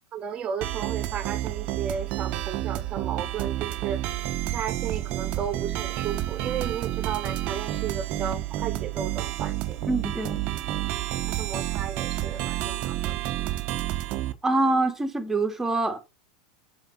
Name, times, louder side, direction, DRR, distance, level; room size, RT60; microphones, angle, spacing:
voice 1, 0.1-4.0 4.5-9.9 11.3-13.2, right 7 dB, 30° right, 1.5 m, -34 dB
sound 1, 0.6-14.3, right 15 dB, 50° right, 1.0 m, -30 dB
voice 2, 9.8-10.4 14.4-16.0, right 2 dB, 10° right, 2.6 m, -25 dB
7.9 x 5.3 x 5.9 m
figure-of-eight pair, 85°, 3 cm